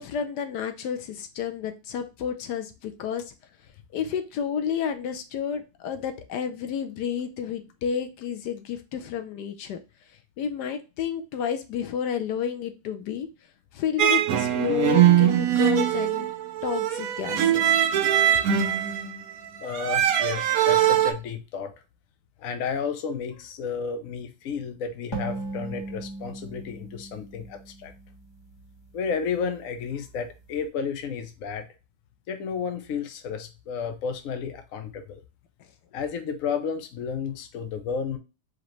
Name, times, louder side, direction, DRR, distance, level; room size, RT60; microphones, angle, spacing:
voice 1, 0.0-3.3 3.9-9.8 10.4-13.3 13.7-16.3 16.6-17.8, left 8 dB, 85° left, 8 dB, 1.3 m, -30 dB
sound 1, 14.0-21.1, right 11 dB, 65° right, 1.0 m, -22 dB
voice 2, 19.6-21.7 22.4-27.9 28.9-31.7 32.3-35.2 35.9-38.2, left 6 dB, 60° left, 7 dB, 1.1 m, -32 dB
sound 2, 25.1-28.6, right 2 dB, 15° left, 1.4 m, -37 dB
5.0 x 3.0 x 3.0 m, 0.29 s
omnidirectional pair, 1.7 m